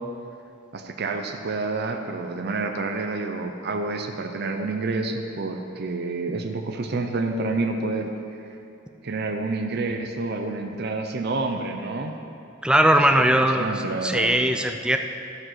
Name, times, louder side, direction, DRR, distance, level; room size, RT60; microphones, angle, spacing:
voice 1, 0.7-8.4 9.0-12.1 13.4-14.3, right 3 dB, 50° right, 4 dB, 0.6 m, -28 dB
voice 2, 12.6-13.7 14.0-15.0, right 1 dB, 5° right, 5 dB, 0.4 m, -19 dB
13.5 x 5.3 x 5.7 m, 2.6 s
head